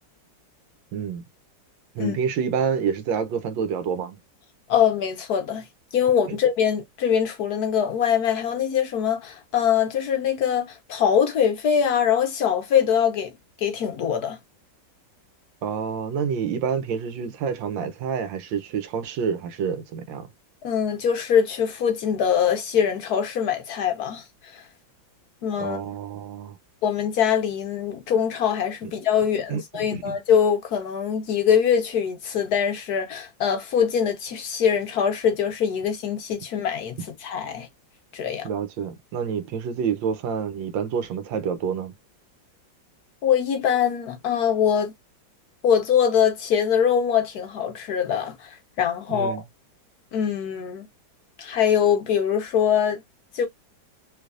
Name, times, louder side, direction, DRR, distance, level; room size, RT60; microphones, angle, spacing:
voice 1, 0.9-1.2 1.9-4.2 6.3-6.4 15.6-20.3 25.6-26.6 29.5-30.2 38.4-41.9 49.1-49.4, right 7 dB, 80° right, 1.4 m, -28 dB
voice 2, 4.7-5.6 5.9-13.3 13.6-14.4 20.6-24.2 24.5-24.6 25.4-25.8 26.8-37.7 38.1-38.5 43.2-44.9 45.6-49.4 50.1-50.9 51.4-53.0 53.3-53.5, left 8 dB, 65° left, 1.1 m, -23 dB
3.3 x 3.1 x 2.4 m
omnidirectional pair, 2.0 m